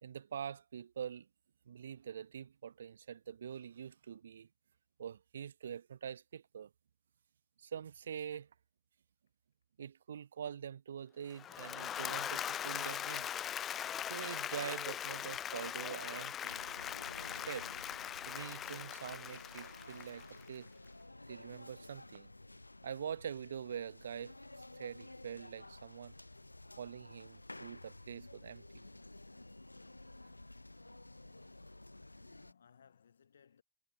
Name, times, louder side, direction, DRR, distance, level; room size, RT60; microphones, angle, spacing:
voice 1, 0.0-1.3 1.7-4.5 5.0-6.7 7.6-8.5 9.8-13.3 14.1-16.6 17.3-17.7 18.3-20.7 21.3-22.3 22.8-24.4 24.8-26.1 26.8-28.9, right 8 dB, 65° right, 0.7 m, -45 dB
Applause / Crowd, 11.3-20.5, left 10 dB, 25° left, 0.9 m, -41 dB
sound 1, 16.5-32.5, left 2 dB, 85° left, 1.1 m, -53 dB
voice 2, 31.1-31.9 32.2-33.6, left 7 dB, 70° left, 6.3 m, -66 dB
figure-of-eight pair, 90°, 0 cm